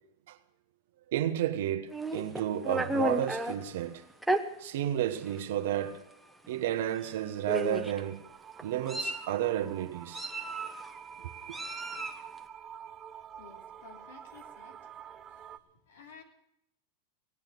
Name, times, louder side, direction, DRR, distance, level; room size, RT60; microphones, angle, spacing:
voice 1, 1.1-4.0 4.6-6.0 6.5-8.2 8.6-10.3, right 11 dB, 75° right, 1.2 m, -32 dB
Meow, 1.9-3.6 4.2-4.4 5.3-5.4 5.8-6.0 7.0-7.1 7.5-8.0 8.6-9.3 10.1-10.9 11.5-12.2, right 1 dB, 5° right, 1.2 m, -32 dB
sound 1, 7.8-15.6, right 8 dB, 30° right, 0.7 m, -48 dB
voice 2, 13.4-14.9 15.3-15.6 15.9-16.2, left 5 dB, 80° left, 3.0 m, -54 dB
18.0 x 9.0 x 7.9 m
supercardioid pair, 120°, 0 cm